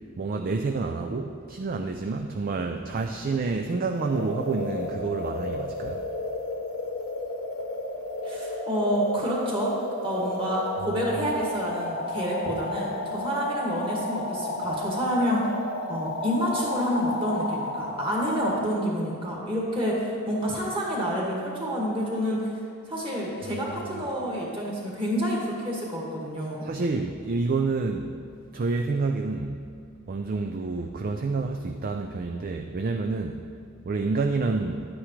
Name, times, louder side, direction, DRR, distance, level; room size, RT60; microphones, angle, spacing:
voice 1, 0.2-6.0 10.8-11.4 23.5-24.1 26.6-28.1 28.5-29.6 30.1-33.5 33.8-34.9, right 3 dB, 40° right, 4 dB, 0.4 m, -29 dB
sound 1, 3.9-18.6, left 2 dB, 75° left, 1.0 m, -33 dB
voice 2, 8.2-9.7 10.0-15.5 15.9-22.4 22.9-26.6, equal, 25° right, -4 dB, 1.9 m, -28 dB
11.5 x 9.2 x 3.2 m, 2.4 s
head